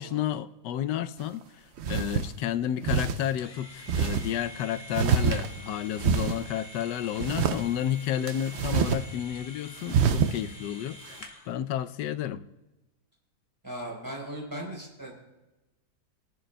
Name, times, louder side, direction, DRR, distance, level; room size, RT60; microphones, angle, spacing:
voice 1, 0.0-12.4, left 11 dB, 80° left, 1.2 m, -31 dB
sound 1, 1.2-1.3 1.8-2.3 2.8-3.2 3.9-4.3 4.9-5.7 6.0-6.4 7.2-7.6 8.3-9.0 9.3-9.4 9.9-10.4, right 6 dB, 80° right, 0.6 m, -26 dB
sound 2, 3.4-11.5, left 1 dB, 25° left, 1.0 m, -47 dB
voice 2, 13.6-15.1, right 1 dB, 10° right, 3.9 m, -38 dB
21.5 x 11.0 x 2.2 m
omnidirectional pair, 1.8 m